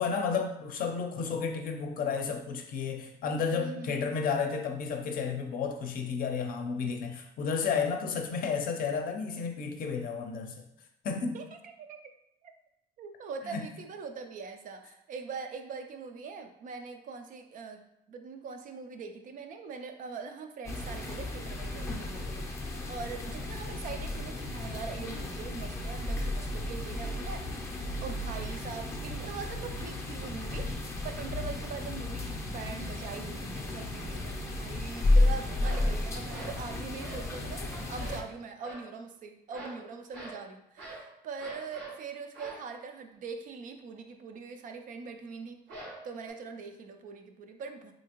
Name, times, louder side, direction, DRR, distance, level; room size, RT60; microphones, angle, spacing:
voice 1, 0.0-10.6 11.0-11.4 13.4-13.7, left 5 dB, 60° left, 4 dB, 0.5 m, -32 dB
voice 2, 3.5-4.0 11.3-12.1 12.4-12.5 13.0-17.8 18.1-27.7 28.0-30.8 31.0-45.6 46.0-47.9, right 5 dB, 50° right, 6 dB, 0.4 m, -42 dB
sound 1, 20.7-38.2, left 2 dB, 15° left, 0.5 m, -33 dB
sound 2, 35.6-35.9 36.3-36.6 37.0-37.3 37.7-38.3 38.6-38.9 39.5-39.8 40.1-40.4 40.8-41.1 41.4-42.0 42.3-42.7 45.7-46.3, right 2 dB, 80° right, 1.2 m, -44 dB
3.3 x 2.7 x 2.9 m, 0.82 s
cardioid pair, 110°, 17 cm